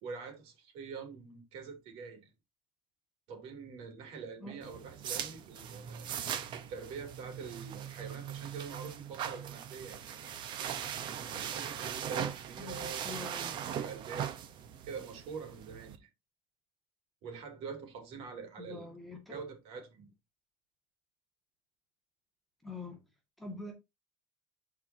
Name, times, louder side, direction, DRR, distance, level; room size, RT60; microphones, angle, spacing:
voice 1, 0.0-2.3 3.3-6.1 6.5-10.1 11.3-13.3 13.6-14.3 14.9-16.1 17.2-18.9 19.3-20.1, right 5 dB, 70° right, 3.0 m, -45 dB
voice 2, 4.4-4.8 12.6-13.6 18.6-19.4 22.6-23.0 23.4-23.7, left 2 dB, ahead, 2.0 m, -45 dB
sound 1, 4.6-16.0, right 9 dB, 50° right, 1.0 m, -40 dB
13.5 x 4.8 x 2.8 m
cardioid pair, 170°, 10 cm